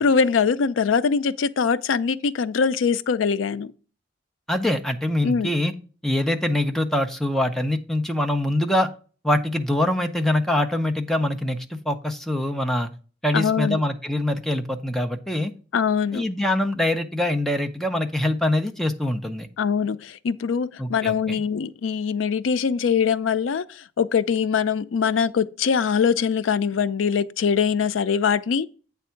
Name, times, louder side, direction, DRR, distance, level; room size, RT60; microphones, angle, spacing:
voice 1, 0.0-3.7 5.2-5.5 13.3-13.8 15.7-16.3 19.6-28.7, left 6 dB, 90° left, 0.4 m, -22 dB
voice 2, 4.5-5.7 6.0-8.9 9.2-12.9 13.2-15.5 16.1-19.5 20.8-21.4, left 1 dB, ahead, 0.5 m, -24 dB
8.3 x 3.5 x 5.7 m
head